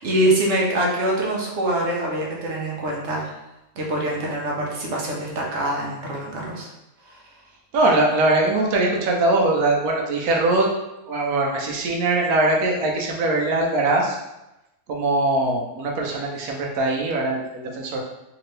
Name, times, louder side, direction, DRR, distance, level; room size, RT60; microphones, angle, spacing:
voice 1, 0.0-3.4 3.8-6.7 7.1-7.2, right 1 dB, 55° right, -3 dB, 1.1 m, -24 dB
voice 2, 7.7-10.7 11.1-14.2 14.9-18.0, right 2 dB, 80° right, 0 dB, 1.2 m, -21 dB
3.5 x 2.9 x 3.2 m, 0.95 s
omnidirectional pair, 1.5 m